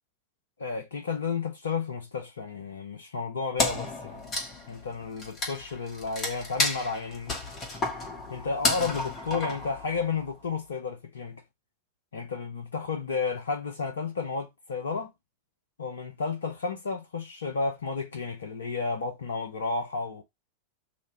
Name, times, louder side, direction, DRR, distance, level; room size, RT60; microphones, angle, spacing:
voice 1, 0.6-4.2 4.7-7.4 8.3-11.4 12.1-15.1 15.8-20.2, left 4 dB, 70° left, 0.6 m, -32 dB
Wood, 3.6-10.3, left 2 dB, 25° left, 1.2 m, -32 dB
3.0 x 2.7 x 3.0 m
figure-of-eight pair, 90°, 0 cm